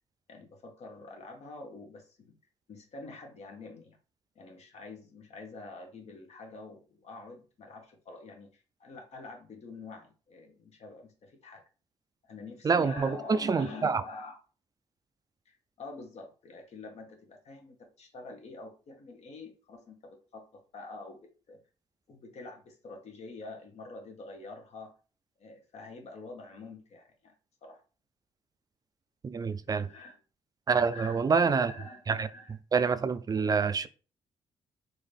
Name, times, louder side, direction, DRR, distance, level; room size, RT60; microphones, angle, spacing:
voice 1, 0.3-2.4 2.7-4.0 4.3-11.6 12.2-14.4 15.5-21.6 22.1-24.9 25.4-27.3 27.6-27.8 29.4-30.2 30.9-32.0 32.3-32.6, left 3 dB, 60° left, 1.1 m, -46 dB
voice 2, 12.6-14.0 29.2-29.9 30.7-31.7 32.1-32.3 32.7-33.9, right 5 dB, 30° right, 0.3 m, -27 dB
3.9 x 2.6 x 3.3 m
cardioid pair, 95°, 13 cm